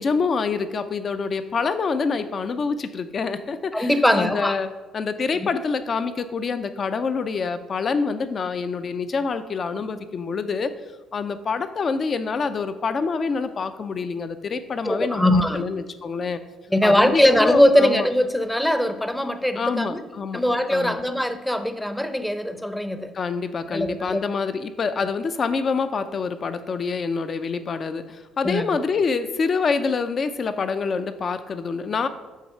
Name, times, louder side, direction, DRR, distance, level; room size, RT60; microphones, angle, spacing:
voice 1, 0.0-3.9 4.2-4.7 4.9-10.7 11.1-16.4 16.8-18.1 19.6-20.4 20.7-21.0 23.1-32.1, left 5 dB, 50° left, 10 dB, 0.6 m, -26 dB
voice 2, 3.7-4.6 5.4-5.5 14.8-15.7 16.7-20.0 20.3-23.1 23.7-24.2 28.4-28.8, left 1 dB, 5° left, 10 dB, 0.7 m, -21 dB
7.3 x 3.2 x 5.6 m, 1.1 s
hypercardioid pair, 55°, 0 cm